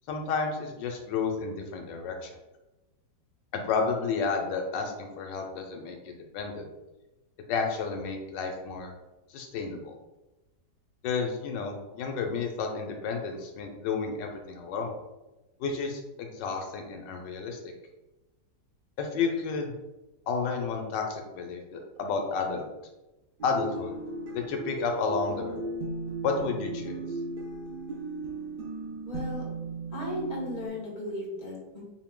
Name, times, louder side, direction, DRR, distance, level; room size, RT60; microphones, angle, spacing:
voice 1, 0.1-2.3 3.5-6.6 7.5-8.9 9.3-9.9 11.0-14.9 15.6-17.6 19.0-19.7 20.3-22.6 23.4-23.9 24.3-25.7 26.2-27.0, left 5 dB, 85° left, 2 dB, 1.3 m, -31 dB
sound 1, 23.4-30.7, right 2 dB, 60° right, 0.5 m, -36 dB
voice 2, 29.1-29.5 29.9-31.8, left 1 dB, 25° left, -4 dB, 1.3 m, -36 dB
4.7 x 2.6 x 3.6 m, 1.0 s
omnidirectional pair, 1.9 m